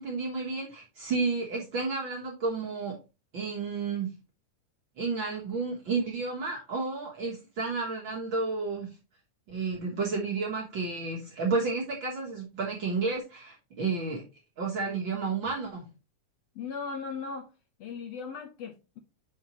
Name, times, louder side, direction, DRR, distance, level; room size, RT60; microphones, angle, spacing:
voice 1, 0.0-3.0 3.3-4.1 5.0-8.9 9.5-14.2 14.6-15.9, right 4 dB, 50° right, 1.5 m, -31 dB
voice 2, 16.5-17.5 17.8-19.0, left 5 dB, 70° left, 1.6 m, -37 dB
7.2 x 5.8 x 3.0 m
omnidirectional pair, 3.6 m